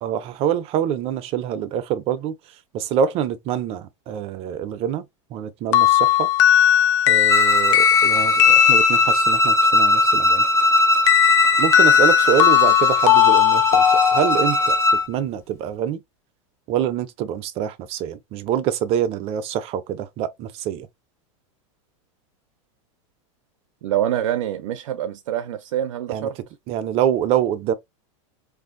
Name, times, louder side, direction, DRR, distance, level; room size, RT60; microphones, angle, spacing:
voice 1, 0.0-2.3 2.7-5.0 5.3-6.3 7.1-10.4 11.6-13.8 14.1-14.8 15.1-16.0 16.7-20.9 26.1-26.3 26.7-27.7, right 9 dB, 35° right, 0.5 m, -25 dB
sound 1, 5.7-9.5 11.1-14.8, left 11 dB, 70° left, 0.5 m, -17 dB
Bowed string instrument, 7.3-15.1, left 1 dB, 15° left, 0.7 m, -19 dB
voice 2, 23.8-26.4, right 11 dB, 90° right, 0.5 m, -25 dB
2.6 x 2.1 x 3.7 m
supercardioid pair, 140°, 16 cm